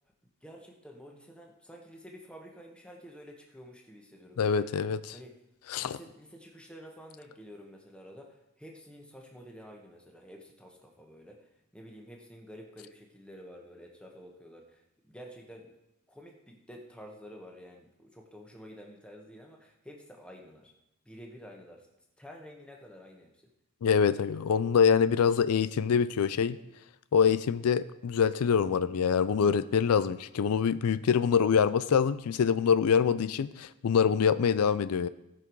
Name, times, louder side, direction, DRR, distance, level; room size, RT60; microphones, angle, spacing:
voice 1, 0.4-4.7 5.1-5.4 5.8-15.7 16.1-20.7 21.0-21.9 22.2-23.3, equal, 5° left, 1 dB, 1.4 m, -50 dB
voice 2, 4.4-5.0 5.7-6.0 23.8-26.6 27.1-35.1, left 7 dB, 85° left, 14 dB, 0.4 m, -25 dB
17.0 x 5.9 x 4.7 m, 0.90 s
head